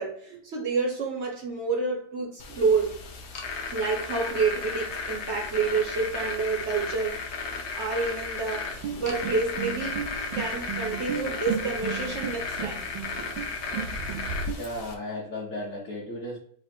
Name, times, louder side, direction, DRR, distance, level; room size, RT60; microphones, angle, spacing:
voice 1, 0.0-2.9 3.7-7.2 7.7-10.0 10.3-12.8, right 4 dB, 50° right, 0 dB, 0.9 m, -28 dB
sound 1, 2.4-14.9, left 4 dB, 70° left, 0.6 m, -35 dB
sound 2, 8.8-14.5, right 7 dB, 85° right, 1.5 m, -35 dB
voice 2, 14.6-16.4, left 1 dB, 50° left, -5 dB, 1.4 m, -35 dB
4.2 x 2.5 x 4.3 m, 0.63 s
omnidirectional pair, 2.0 m